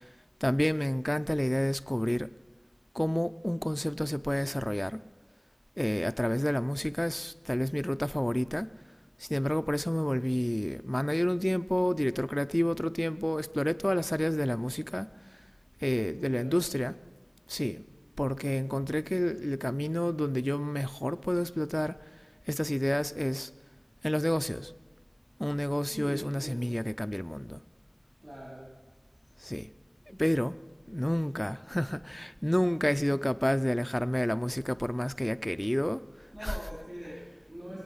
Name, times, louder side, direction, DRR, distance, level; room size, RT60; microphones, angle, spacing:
voice 1, 0.4-2.3 2.9-5.0 5.8-8.7 9.2-15.1 15.8-16.9 17.5-17.8 18.2-22.0 22.5-23.5 24.0-24.7 25.4-27.6 29.4-29.7 30.1-30.6 30.9-36.0 36.4-36.5, equal, 15° left, 12 dB, 0.5 m, -29 dB
voice 2, 16.2-16.6 25.9-26.8 28.2-28.8 36.3-37.8, equal, 60° right, -4 dB, 3.8 m, -43 dB
22.5 x 8.8 x 5.6 m, 1.4 s
wide cardioid pair, 45°, 0 cm